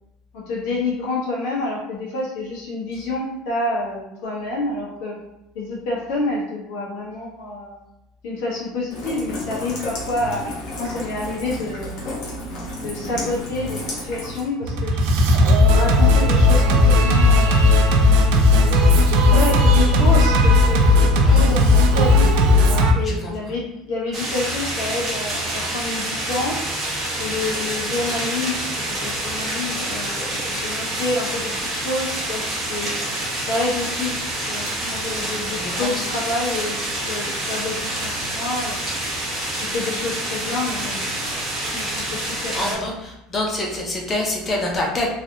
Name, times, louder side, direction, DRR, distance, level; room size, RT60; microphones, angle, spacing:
voice 1, 0.3-5.2 5.5-7.8 8.2-10.5 10.8-12.0 12.7-15.0 15.6-17.7 19.3-22.1 22.6-26.6 27.2-33.0 33.5-34.2 34.5-39.1 39.6-41.2 41.6-42.8, left 2 dB, 70° left, -4 dB, 1.1 m, -28 dB
Rain, 8.9-14.5, left 1 dB, 40° left, 0.8 m, -32 dB
Singing, 14.6-22.9, left 2 dB, 65° right, 0.4 m, -15 dB
voice 2, 23.0-23.3 35.5-36.1 42.5-45.1, left 1 dB, 20° left, -1 dB, 0.5 m, -26 dB
sound 1, 24.1-42.7, right 1 dB, 25° right, 1.0 m, -27 dB
3.1 x 2.7 x 2.7 m, 0.88 s
cardioid pair, 175°, 0 cm